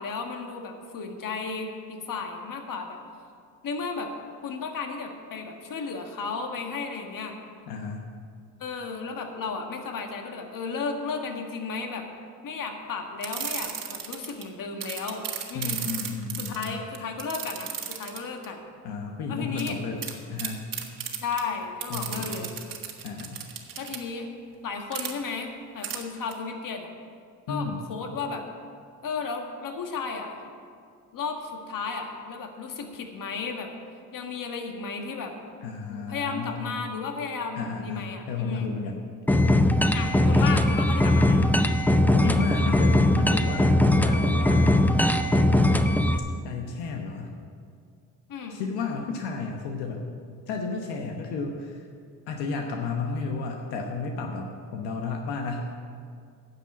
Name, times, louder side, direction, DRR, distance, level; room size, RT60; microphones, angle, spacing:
voice 1, 0.0-3.0 3.6-4.1 4.4-7.4 8.6-12.1 12.4-15.2 15.5-15.8 16.4-18.6 19.3-19.8 21.2-22.5 23.8-24.3 24.6-26.9 27.5-28.4 29.0-30.5 31.1-33.7 34.1-35.3 35.9-38.7 39.9-41.5 42.2-42.8 48.3-48.6, left 5 dB, 55° left, 4 dB, 1.6 m, -34 dB
voice 2, 7.7-8.1 15.5-16.8 18.8-20.0 20.3-20.7 21.9-22.5 23.0-23.5 27.5-27.8 35.6-36.7 37.6-39.0 42.1-44.8 46.4-47.3 48.5-50.1 50.5-51.9 52.3-55.7, left 4 dB, 85° left, 2 dB, 1.1 m, -33 dB
sound 1, 13.2-14.4 14.8-18.5 19.6-19.7 20.0-20.1 20.4-21.4 21.8-24.0 24.9-25.1 25.8-26.0 26.3-26.4, right 8 dB, 60° right, 1.6 m, -34 dB
sound 2, 39.3-46.2, left 1 dB, 5° left, 0.5 m, -20 dB
9.8 x 6.9 x 8.6 m, 2.2 s
cardioid pair, 80°, 38 cm